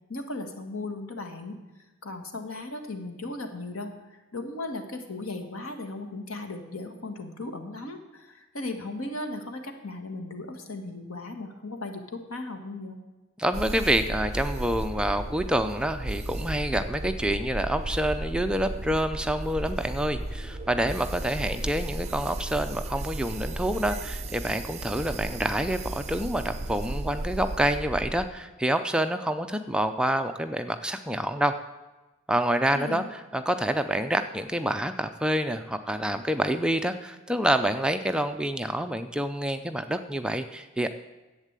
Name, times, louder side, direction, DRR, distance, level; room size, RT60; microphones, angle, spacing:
voice 1, 0.1-1.6 2.0-3.9 4.3-13.0 32.7-33.1, left 2 dB, 80° left, 5 dB, 1.7 m, -36 dB
voice 2, 13.4-31.6 32.3-40.9, right 1 dB, 5° right, 7 dB, 0.5 m, -27 dB
sound 1, 13.5-28.3, right 2 dB, 30° right, 0.8 m, -35 dB
11.0 x 8.3 x 8.2 m, 1.1 s
head